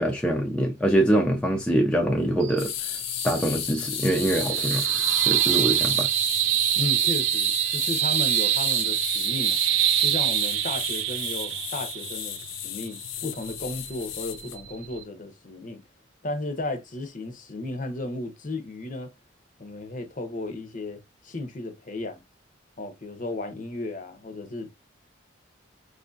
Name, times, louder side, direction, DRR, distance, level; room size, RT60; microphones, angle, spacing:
voice 1, 0.0-2.7 3.2-4.8 5.2-6.1, right 1 dB, 5° left, 0.4 m, -24 dB
sound 1, 2.4-15.0, right 13 dB, 80° right, 0.4 m, -26 dB
sound 2, 2.6-14.6, left 15 dB, 80° left, 0.4 m, -35 dB
voice 2, 6.8-9.6 10.0-15.8 16.2-19.1 19.6-22.2 22.8-24.8, left 2 dB, 40° left, 0.7 m, -34 dB
4.7 x 2.5 x 2.3 m
head